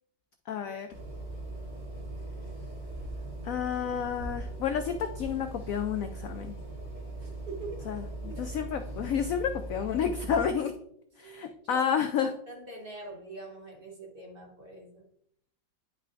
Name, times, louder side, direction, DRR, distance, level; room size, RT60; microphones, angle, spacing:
voice 1, 0.5-0.9 3.4-6.6 7.9-8.0 8.4-10.7 11.2-12.3, left 8 dB, 75° left, 7 dB, 0.7 m, -30 dB
sound 1, 0.9-10.5, right 2 dB, 75° right, 3.4 m, -40 dB
voice 2, 7.2-7.9 8.2-8.5 11.2-15.1, right 2 dB, 35° right, 0 dB, 1.2 m, -44 dB
10.0 x 5.6 x 2.5 m, 0.68 s
omnidirectional pair, 2.0 m